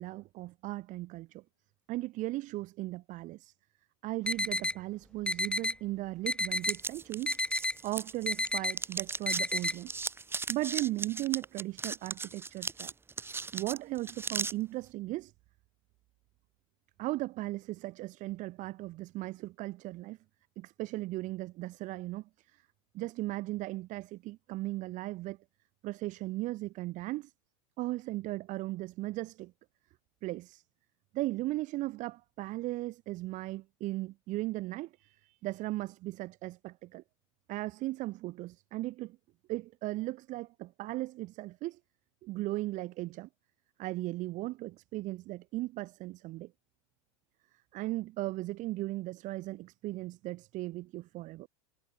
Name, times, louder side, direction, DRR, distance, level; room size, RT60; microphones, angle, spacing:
voice 1, 0.0-1.4 1.9-3.5 4.0-7.4 7.8-9.9 10.5-12.9 13.5-15.3 17.0-20.2 20.6-22.2 22.9-25.4 25.8-27.3 27.8-29.5 30.2-30.6 31.1-37.0 37.5-39.2 39.5-41.8 42.2-43.3 43.8-46.5 47.7-51.5, right 18 dB, 50° right, 6.4 m, -37 dB
sound 1, 4.3-4.7 5.3-5.7 6.3-6.7 7.3-7.7 8.3-8.7 9.3-9.7, left 1 dB, 5° left, 7.4 m, -30 dB
sound 2, 6.6-8.5 8.7-14.5, right 4 dB, 15° right, 2.7 m, -37 dB
hypercardioid pair, 110°, 17 cm